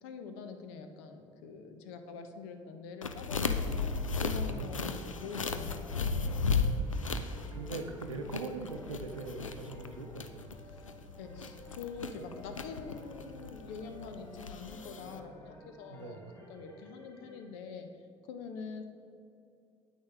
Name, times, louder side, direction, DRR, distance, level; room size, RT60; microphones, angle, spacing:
voice 1, 0.0-3.7 4.2-6.4 10.7-16.2 16.5-17.9 18.2-18.8, left 5 dB, 60° left, 7 dB, 0.8 m, -45 dB
sound 1, 3.0-15.2, left 4 dB, 85° left, 0.4 m, -35 dB
sound 2, 3.4-17.4, left 1 dB, 20° left, 1.5 m, -54 dB
voice 2, 4.2-4.9 7.5-10.5 15.9-16.2, right 3 dB, 85° right, 6 dB, 0.6 m, -42 dB
9.6 x 8.4 x 3.5 m, 2.6 s
figure-of-eight pair, 55°, 16 cm